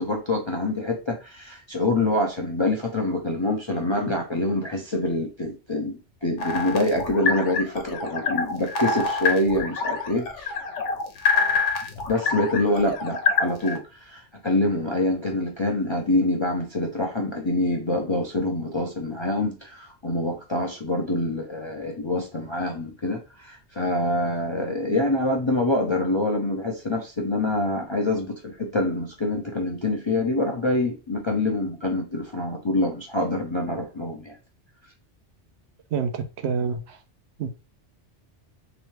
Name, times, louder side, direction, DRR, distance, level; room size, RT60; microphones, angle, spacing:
voice 1, 0.0-10.6 12.1-34.4, left 1 dB, 35° left, 0 dB, 0.5 m, -25 dB
sound 1, 6.4-13.8, left 5 dB, 80° left, 1.1 m, -26 dB
voice 2, 35.9-37.0 37.4-37.5, right 6 dB, 70° right, 7 dB, 0.8 m, -27 dB
3.2 x 3.0 x 3.1 m, 0.31 s
omnidirectional pair, 1.2 m